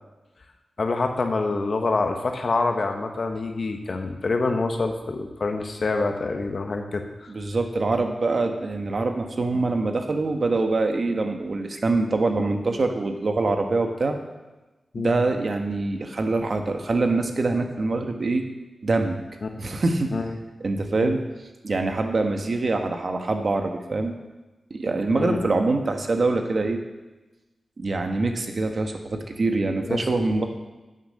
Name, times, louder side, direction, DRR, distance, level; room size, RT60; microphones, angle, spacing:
voice 1, 0.8-7.3 12.3-12.4 14.9-15.2 19.4-19.5 20.1-20.4 21.0-21.2 25.1-25.7 29.8-30.5, left 3 dB, 65° left, 5 dB, 1.2 m, -26 dB
voice 2, 7.3-14.2 15.0-18.4 18.8-19.2 19.6-20.1 20.6-21.2 21.6-24.1 24.7-26.8 27.8-30.5, right 3 dB, 60° right, 5 dB, 1.3 m, -24 dB
9.7 x 6.6 x 6.6 m, 1.1 s
cardioid pair, 45°, 0 cm